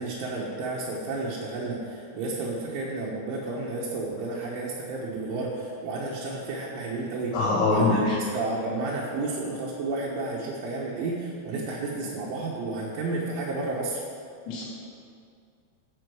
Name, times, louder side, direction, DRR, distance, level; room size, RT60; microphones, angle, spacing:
voice 1, 0.0-14.0, right 3 dB, 75° right, -5 dB, 3.4 m, -32 dB
voice 2, 7.3-8.2 14.5-14.6, left 3 dB, 85° left, -6 dB, 5.3 m, -23 dB
12.5 x 6.0 x 6.2 m, 2.4 s
omnidirectional pair, 6.0 m